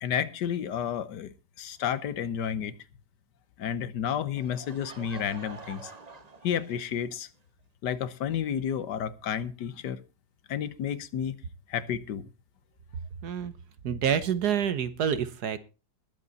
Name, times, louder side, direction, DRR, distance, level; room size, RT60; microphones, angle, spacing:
voice 1, 0.0-2.8 3.6-5.9 6.4-7.3 7.8-10.0 10.5-11.4 11.7-12.3, left 8 dB, 85° left, 1.6 m, -31 dB
Laughter / Crowd, 4.4-7.2, right 3 dB, 25° right, 1.1 m, -47 dB
voice 2, 13.2-13.5 13.8-15.6, right 8 dB, 70° right, 1.6 m, -27 dB
20.5 x 8.2 x 4.1 m
omnidirectional pair, 1.8 m